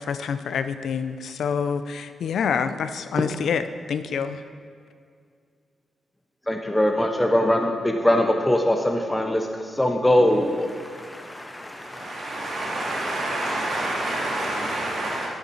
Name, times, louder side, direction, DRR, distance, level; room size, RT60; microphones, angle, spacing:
voice 1, 0.0-3.6 3.9-4.4, left 6 dB, 75° left, 10 dB, 0.5 m, -27 dB
voice 2, 6.5-13.7, left 1 dB, 5° left, 3 dB, 0.6 m, -23 dB
voice 3, 11.8-15.3, right 1 dB, 60° right, -5 dB, 2.8 m, -28 dB
10.5 x 9.8 x 4.1 m, 2.2 s
wide cardioid pair, 125°, 0 cm